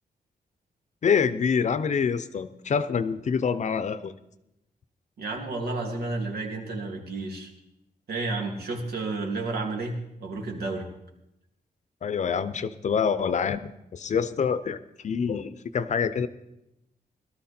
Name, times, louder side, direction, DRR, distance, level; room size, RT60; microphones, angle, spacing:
voice 1, 1.0-4.2 12.0-14.8 15.0-16.3, left 6 dB, 50° left, 14 dB, 0.7 m, -26 dB
voice 2, 5.2-7.5 8.1-10.9, right 3 dB, 90° right, 1 dB, 2.8 m, -31 dB
18.5 x 13.0 x 4.4 m, 0.87 s
wide cardioid pair, 170°, 16 cm